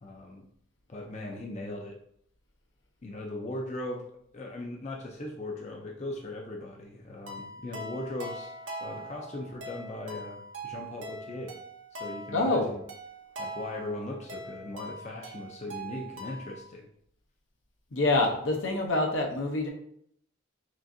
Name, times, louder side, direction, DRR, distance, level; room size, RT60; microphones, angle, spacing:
voice 1, 0.0-0.5 0.9-2.0 3.0-4.1 4.3-8.5 8.8-11.6 11.9-12.8 13.4-16.9, left 1 dB, 35° left, 1 dB, 0.5 m, -39 dB
sound 1, 7.3-16.6, right 1 dB, 75° right, 0.7 m, -42 dB
voice 2, 12.3-12.7 17.9-19.7, left 2 dB, 75° left, 2 dB, 0.8 m, -26 dB
6.1 x 2.5 x 2.6 m, 0.69 s
head